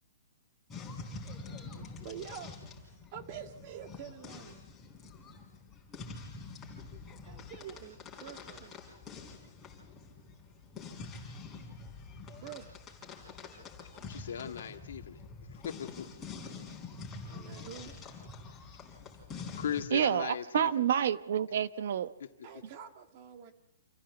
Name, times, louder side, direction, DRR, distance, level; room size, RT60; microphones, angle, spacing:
sound 1, 0.7-19.9, left 4 dB, 10° left, 3.5 m, -46 dB
voice 1, 2.0-2.6 3.1-4.7 7.3-8.8 12.3-12.7 17.3-17.9 22.4-23.5, right 9 dB, 30° right, 1.8 m, -46 dB
voice 2, 14.1-16.1 19.6-20.9 22.2-22.3, left 8 dB, 70° left, 1.8 m, -38 dB
voice 3, 19.9-22.1, right 9 dB, 55° right, 0.9 m, -28 dB
27.5 x 15.0 x 7.1 m
hypercardioid pair, 170°, 0 cm